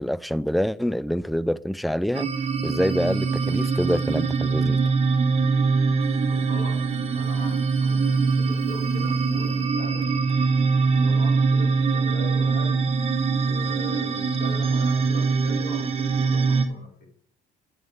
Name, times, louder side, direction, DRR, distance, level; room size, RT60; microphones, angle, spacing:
voice 1, 0.0-2.3 2.6-4.8, equal, ahead, 0.3 m, -26 dB
sound 1, 2.1-16.6, right 4 dB, 35° right, 1.1 m, -23 dB
voice 2, 6.2-10.1 11.0-12.9 13.3-16.9, left 3 dB, 55° left, 4.2 m, -41 dB
10.5 x 4.8 x 8.0 m
cardioid pair, 110°, 17 cm